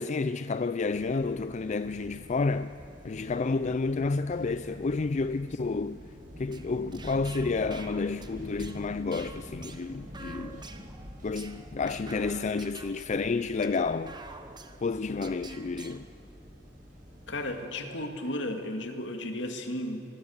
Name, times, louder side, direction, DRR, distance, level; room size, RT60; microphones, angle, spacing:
voice 1, 0.0-2.7 3.0-6.0 6.4-10.6 11.2-14.2 14.8-16.1, left 4 dB, 40° left, 0.4 m, -30 dB
sound 1, 0.8-17.7, equal, 45° right, 6.7 m, -47 dB
sound 2, 6.4-16.0, right 3 dB, 25° right, 1.3 m, -49 dB
voice 2, 17.3-20.0, left 1 dB, 70° left, 2.4 m, -34 dB
25.0 x 21.5 x 7.3 m
head